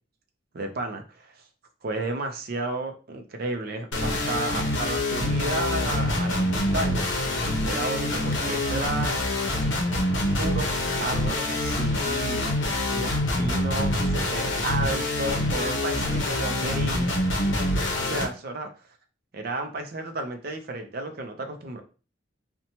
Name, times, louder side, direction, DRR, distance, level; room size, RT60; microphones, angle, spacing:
voice 1, 0.5-1.4 1.8-7.1 7.6-9.2 10.3-12.6 12.9-17.1 18.0-18.7 19.3-21.8, right 2 dB, 50° right, 4 dB, 0.5 m, -32 dB
sound 1, 3.9-18.2, left 1 dB, 70° left, 0.6 m, -26 dB
2.8 x 2.1 x 2.8 m, 0.34 s
head